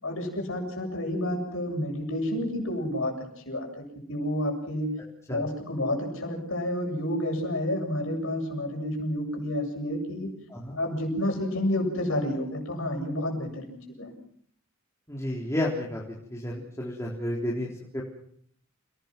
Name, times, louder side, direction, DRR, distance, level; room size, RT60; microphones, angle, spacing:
voice 1, 0.0-4.9 5.3-10.3 10.7-14.1, left 1 dB, 65° left, 2 dB, 7.8 m, -30 dB
voice 2, 15.1-16.0 16.3-18.0, left 1 dB, 15° left, -4 dB, 3.9 m, -31 dB
29.5 x 19.5 x 6.1 m, 0.63 s
head